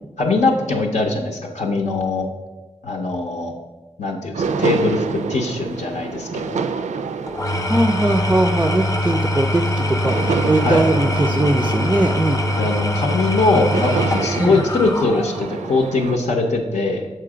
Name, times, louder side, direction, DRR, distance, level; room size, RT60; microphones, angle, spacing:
voice 1, 0.2-2.3 2.8-3.5 4.0-6.6 10.6-10.8 12.6-17.1, left 3 dB, 80° left, 0 dB, 0.7 m, -21 dB
sound 1, 4.3-16.2, right 5 dB, 80° right, 0.4 m, -28 dB
Engine / Tools, 7.3-15.6, left 1 dB, 30° left, 0.6 m, -23 dB
voice 2, 7.7-12.4 14.4-14.6, right 1 dB, 10° right, 5 dB, 0.3 m, -20 dB
6.6 x 4.5 x 4.9 m, 1.2 s
wide cardioid pair, 120°, 12 cm